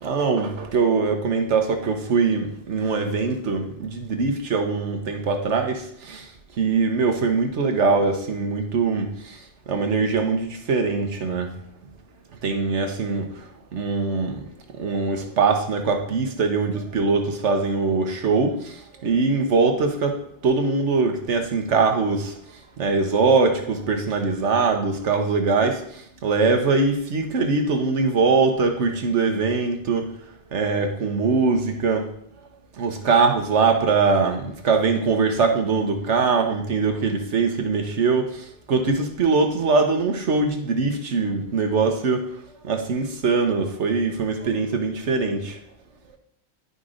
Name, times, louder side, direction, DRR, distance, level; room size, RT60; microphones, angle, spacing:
voice 1, 0.0-6.3 6.6-9.4 9.7-11.5 12.4-14.5 14.8-20.2 20.4-22.3 22.8-30.1 30.5-32.1 32.8-45.6, right 4 dB, 90° right, 5 dB, 1.3 m, -22 dB
11.5 x 5.2 x 2.5 m, 0.68 s
omnidirectional pair, 1.2 m